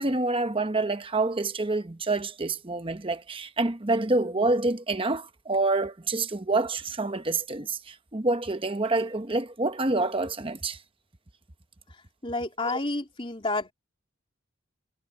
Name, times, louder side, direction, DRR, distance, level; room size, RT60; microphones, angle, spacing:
voice 1, 0.0-10.8, right 2 dB, 25° right, 1.0 m, -27 dB
voice 2, 12.2-13.7, left 2 dB, 25° left, 3.3 m, -30 dB
head